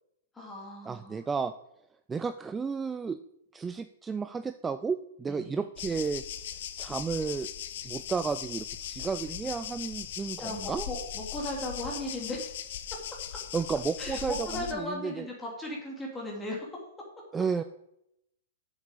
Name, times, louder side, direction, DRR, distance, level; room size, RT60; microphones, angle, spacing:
voice 1, 0.3-1.3 5.3-5.6 10.4-10.6 10.9-12.8 14.0-16.7, left 1 dB, 10° left, -2 dB, 2.5 m, -37 dB
voice 2, 0.9-1.5 2.1-3.2 3.5-6.2 6.8-7.5 7.8-10.9 13.5-15.3 17.3-17.6, right 5 dB, 15° right, 11 dB, 0.3 m, -32 dB
sound 1, 5.8-14.7, left 10 dB, 65° left, 0.8 m, -39 dB
7.2 x 6.7 x 6.6 m, 0.81 s
hypercardioid pair, 135°, 0 cm